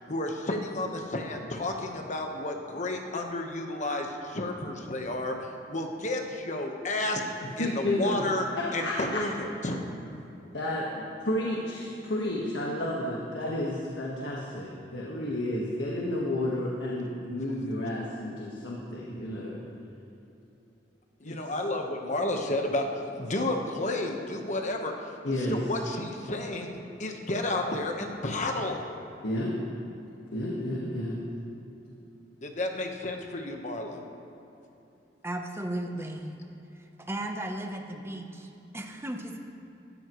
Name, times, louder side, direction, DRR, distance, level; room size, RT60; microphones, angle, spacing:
voice 1, 0.1-8.4 8.7-9.8 21.2-22.9 23.1-25.1 25.4-28.8 32.4-34.0, left 2 dB, 45° left, 3 dB, 1.2 m, -31 dB
voice 2, 7.6-8.2 8.6-9.2 10.5-19.6 21.2-21.4 25.2-25.6 29.2-29.6 30.3-31.2, left 1 dB, 85° left, -4 dB, 1.6 m, -31 dB
voice 3, 35.2-36.4 36.7-39.4, right 1 dB, 15° right, 4 dB, 0.9 m, -36 dB
17.0 x 13.5 x 3.1 m, 2.9 s
head